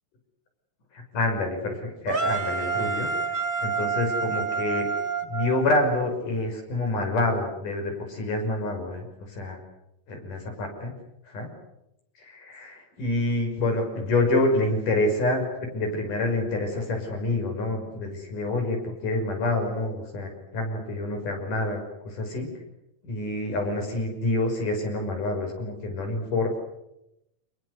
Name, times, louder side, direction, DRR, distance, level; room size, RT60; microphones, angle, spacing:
voice 1, 0.9-3.1 3.6-4.9 5.3-9.6 10.1-10.9 11.3-11.5 12.2-22.5 23.0-26.6, left 2 dB, 85° left, 4 dB, 7.5 m, -27 dB
sound 1, 2.1-6.2, right 5 dB, 40° right, 0.7 m, -28 dB
27.5 x 22.0 x 8.2 m, 0.86 s
omnidirectional pair, 3.6 m